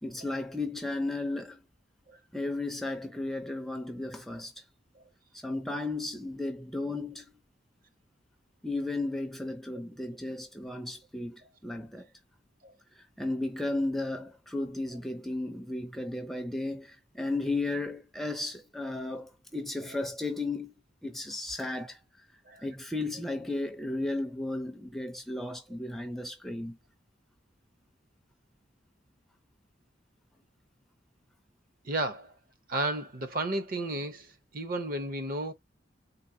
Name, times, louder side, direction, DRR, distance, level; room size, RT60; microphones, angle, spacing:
voice 1, 0.0-1.6 2.3-4.7 5.3-7.3 8.6-12.1 13.0-20.7 21.0-22.3 22.6-26.8, left 2 dB, ahead, 0.4 m, -34 dB
voice 2, 31.8-32.3 32.7-35.5, right 2 dB, 45° right, 0.7 m, -33 dB
4.0 x 2.2 x 2.6 m
head